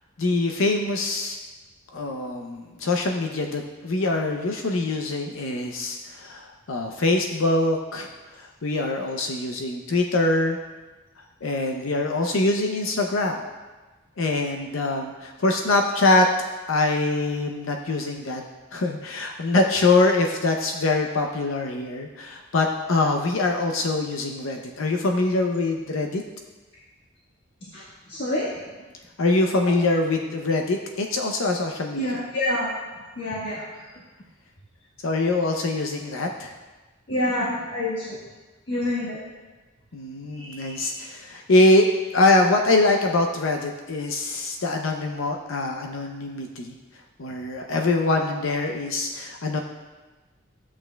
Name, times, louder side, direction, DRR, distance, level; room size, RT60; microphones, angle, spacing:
voice 1, 0.2-1.4 1.9-10.6 11.4-13.4 14.2-16.3 16.7-18.4 18.7-26.2 29.2-32.2 35.0-36.5 39.9-41.9 42.1-46.7 47.2-49.6, left 2 dB, 80° left, 3 dB, 0.6 m, -23 dB
voice 2, 28.1-28.5 31.9-32.7 33.2-33.7 37.1-38.2 38.7-39.2 40.3-40.9, left 1 dB, 55° left, -8 dB, 1.4 m, -27 dB
12.5 x 8.6 x 2.2 m, 1.2 s
head